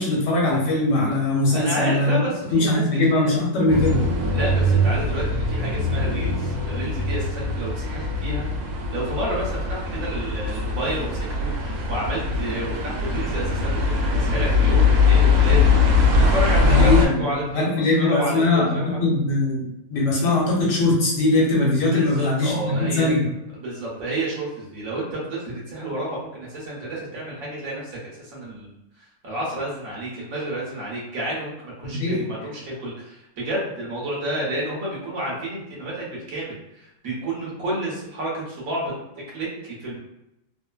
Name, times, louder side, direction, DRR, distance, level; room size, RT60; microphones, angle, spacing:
voice 1, 0.0-2.2 2.5-4.0 16.6-23.3 31.8-32.2, left 2 dB, 70° left, -3 dB, 1.3 m, -21 dB
voice 2, 1.5-2.8 3.1-3.3 4.3-8.5 8.9-15.8 16.2-19.0 20.1-20.3 21.9-23.2 23.6-28.7 29.0-38.8 39.2-40.0, right 1 dB, 55° right, -5 dB, 1.1 m, -30 dB
sound 1, 3.7-17.1, left 3 dB, 75° right, 0.8 m, -21 dB
3.2 x 2.0 x 2.3 m, 0.86 s
omnidirectional pair, 2.0 m